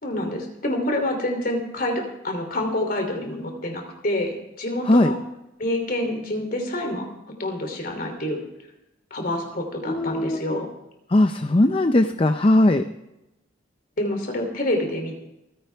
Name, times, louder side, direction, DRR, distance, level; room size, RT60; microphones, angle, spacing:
voice 1, 0.0-5.2 5.6-7.1 7.4-8.4 9.1-10.7 14.0-15.2, left 1 dB, 45° left, 4 dB, 3.0 m, -27 dB
voice 2, 9.9-10.6 11.1-12.8, left 1 dB, 30° left, 8 dB, 0.5 m, -19 dB
27.5 x 10.5 x 3.5 m, 0.89 s
head